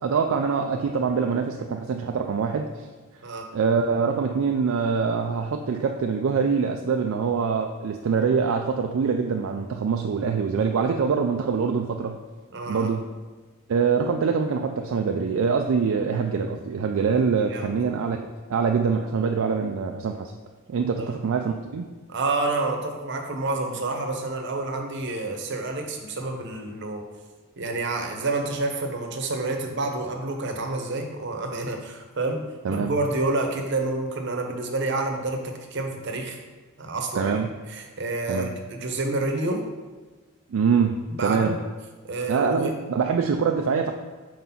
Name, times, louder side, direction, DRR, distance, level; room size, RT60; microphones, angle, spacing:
voice 1, 0.0-2.7 3.5-12.2 12.7-13.0 13.7-20.3 20.7-21.9 32.6-32.9 37.1-37.5 38.3-38.5 40.5-41.6 42.3-43.9, right 5 dB, 70° right, 3 dB, 0.4 m, -24 dB
voice 2, 12.5-12.9 17.5-18.0 21.0-21.2 22.1-27.0 27.6-36.4 36.8-39.6 41.1-41.6 42.1-42.8, right 2 dB, 55° right, 3 dB, 0.8 m, -29 dB
4.7 x 3.9 x 5.7 m, 1.3 s
head